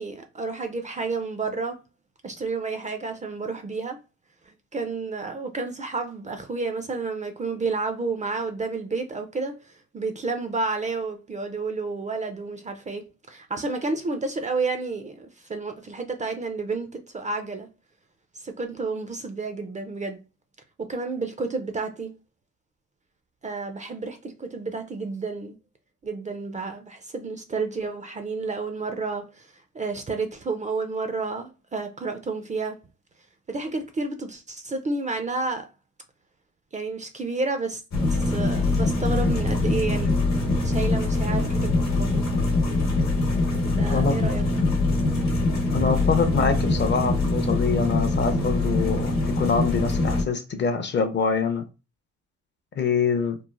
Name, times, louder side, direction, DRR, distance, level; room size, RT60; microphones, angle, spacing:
voice 1, 0.0-1.8 2.2-4.0 4.5-13.0 13.3-17.7 18.3-20.2 20.8-22.1 23.4-25.6 26.0-32.8 33.5-35.7 36.7-37.8 38.1-40.2 40.6-42.3 43.6-44.4, right 3 dB, 25° right, 0.4 m, -31 dB
sound 1, 37.9-50.2, left 2 dB, 65° left, 0.9 m, -23 dB
voice 2, 45.7-51.6 52.8-53.4, left 5 dB, 35° left, 0.5 m, -25 dB
3.0 x 2.0 x 2.4 m
cardioid pair, 90°, 30 cm